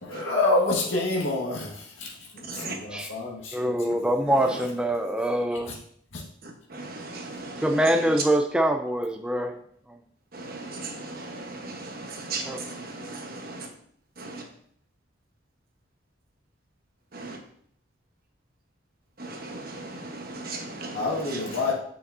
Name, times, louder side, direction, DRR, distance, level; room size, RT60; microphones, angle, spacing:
voice 1, 0.0-4.0 20.9-21.7, left 2 dB, 85° left, 1.8 m, -28 dB
voice 2, 3.5-5.7 7.6-9.5 12.5-12.6, right 1 dB, 5° right, 0.4 m, -24 dB
voice 3, 7.1-7.5 10.5-10.9 12.3-12.4 13.1-13.2 17.1-17.4 19.5-19.6 20.4-20.9, right 4 dB, 50° right, 1.2 m, -35 dB
9.2 x 6.0 x 2.7 m
head